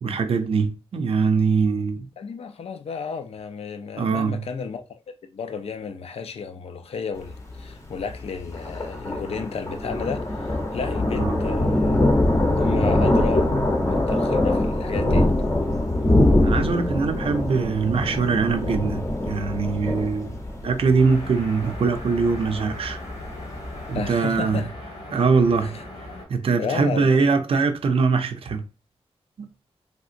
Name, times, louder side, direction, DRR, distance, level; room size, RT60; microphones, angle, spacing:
voice 1, 0.0-2.1 4.0-4.5 11.2-11.4 16.4-23.0 23.9-24.7 25.1-25.8 26.3-28.7 29.4-29.5, right 4 dB, 65° right, 0.5 m, -22 dB
voice 2, 2.2-5.0 5.3-12.1 12.6-15.3 23.9-24.7 25.6-25.8 26.6-27.3, left 6 dB, 70° left, 0.4 m, -33 dB
Thunder, 7.2-24.1, left 1 dB, 30° left, 0.7 m, -23 dB
sound 1, 21.0-26.3, left 1 dB, 85° left, 1.5 m, -38 dB
3.4 x 2.8 x 2.4 m
wide cardioid pair, 170°, 10 cm